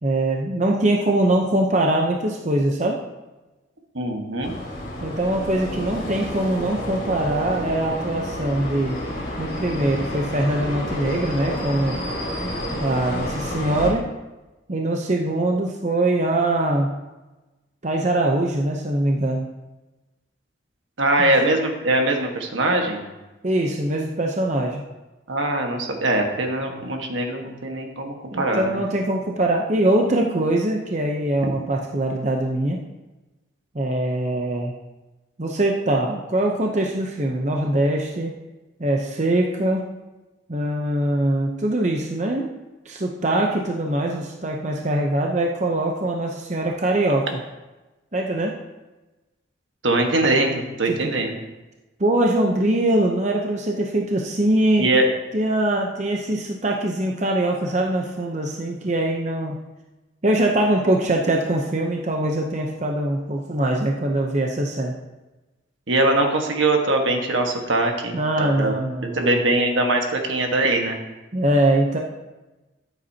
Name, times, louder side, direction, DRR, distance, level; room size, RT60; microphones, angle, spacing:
voice 1, 0.0-3.0 5.0-9.0 9.4-12.0 12.8-14.1 14.7-16.9 17.8-19.5 21.2-21.3 23.4-24.8 28.3-32.8 33.7-34.7 35.4-38.4 38.8-39.9 40.5-42.5 42.9-47.4 48.1-48.5 50.9-51.1 52.0-54.9 55.3-59.6 60.2-65.0 68.1-69.5 71.3-72.0, right 1 dB, 35° right, 1 dB, 0.7 m, -22 dB
voice 2, 3.9-4.5 21.0-23.0 25.3-28.8 49.8-51.4 54.8-55.1 65.9-68.7 69.1-71.0, right 2 dB, 75° right, 2 dB, 1.5 m, -22 dB
sound 1, 4.4-13.9, equal, 50° left, 3.8 m, -30 dB
13.5 x 8.0 x 2.9 m, 1.1 s
head